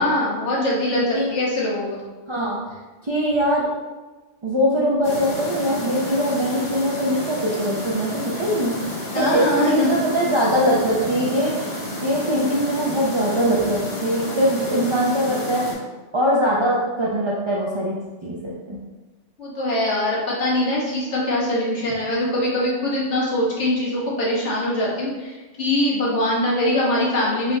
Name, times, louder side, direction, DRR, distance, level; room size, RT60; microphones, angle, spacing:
voice 1, 0.0-1.0 1.3-2.1 9.1-9.9 19.4-27.6, left 1 dB, 70° left, -5 dB, 1.3 m, -22 dB
voice 2, 0.9-1.3 2.3-2.6 3.0-3.7 4.4-8.8 9.1-15.7 16.1-18.0 18.2-18.8, equal, 45° right, -5 dB, 0.3 m, -22 dB
sound 1, 5.0-15.7, left 1 dB, 55° left, 1.1 m, -31 dB
3.7 x 2.1 x 4.4 m, 1.2 s
omnidirectional pair, 1.2 m